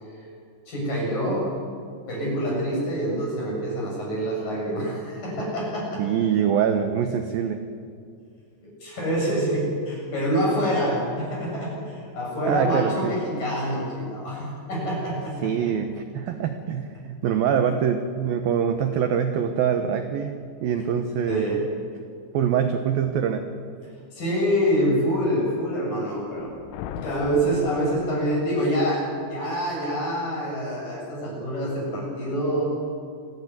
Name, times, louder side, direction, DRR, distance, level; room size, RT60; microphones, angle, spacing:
voice 1, 0.7-1.5 2.1-5.9 8.8-15.5 21.3-21.6 24.1-26.5 26.9-32.6, equal, 45° left, -3 dB, 9.2 m, -26 dB
voice 2, 6.0-7.6 12.5-13.2 15.4-21.5 22.3-23.5, right 8 dB, 80° right, 7 dB, 2.1 m, -24 dB
sound 1, 26.3-28.9, left 10 dB, 85° left, 3.6 m, -39 dB
27.0 x 15.5 x 9.6 m, 2.3 s
omnidirectional pair, 5.8 m